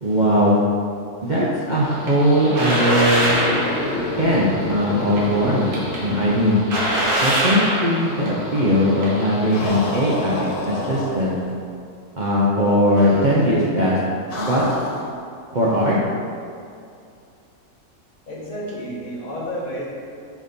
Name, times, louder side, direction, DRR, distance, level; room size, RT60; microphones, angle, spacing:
voice 1, 0.0-0.6 1.2-3.4 4.2-5.7 6.0-6.6 7.2-11.4 12.2-14.0 14.4-14.6 15.5-16.0, equal, 45° right, -7 dB, 0.6 m, -19 dB
sound 1, 1.8-9.7, equal, 75° right, 1.8 m, -25 dB
sound 2, 3.0-7.1 7.4-7.5 9.5-11.5 12.9-13.6 14.3-15.2, left 2 dB, 85° left, 1.5 m, -29 dB
voice 2, 18.3-19.9, equal, 60° left, -5 dB, 1.7 m, -30 dB
5.1 x 4.1 x 5.2 m, 2.4 s
omnidirectional pair, 1.6 m